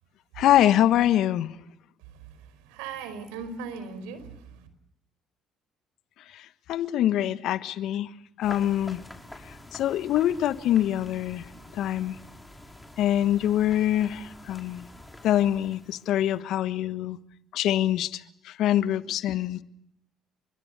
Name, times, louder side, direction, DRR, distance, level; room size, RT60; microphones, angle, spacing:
voice 1, 0.4-1.5 6.3-6.4 6.7-8.1 8.4-9.0 9.7-11.4 11.7-12.2 13.0-14.8 15.2-17.2 17.5-19.6, left 12 dB, 65° left, 1.3 m, -24 dB
voice 2, 2.7-4.7, right 5 dB, 75° right, 5.0 m, -38 dB
sound 1, 8.4-16.4, left 1 dB, 10° left, 5.5 m, -47 dB
30.0 x 24.5 x 6.9 m
hypercardioid pair, 55°, 0 cm